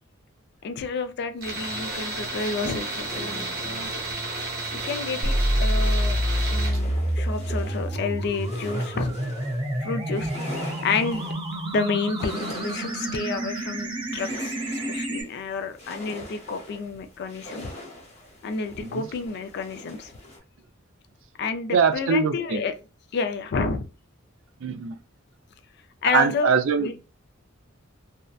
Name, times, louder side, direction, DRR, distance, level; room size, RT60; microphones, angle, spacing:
voice 1, 0.6-4.0 4.7-6.2 6.5-9.2 9.8-11.2 11.7-17.7 18.4-20.1 21.4-22.7 23.1-23.9 26.0-26.9, left 4 dB, 55° left, 0.4 m, -30 dB
Tools, 1.4-6.8, right 2 dB, 55° right, 1.0 m, -32 dB
sound 1, 3.1-20.4, left 1 dB, 35° left, 0.8 m, -43 dB
sound 2, 5.2-15.2, equal, 25° right, 0.7 m, -27 dB
voice 2, 21.7-22.6 24.6-25.0 26.1-26.9, right 6 dB, 70° right, 0.4 m, -22 dB
2.7 x 2.1 x 2.3 m
head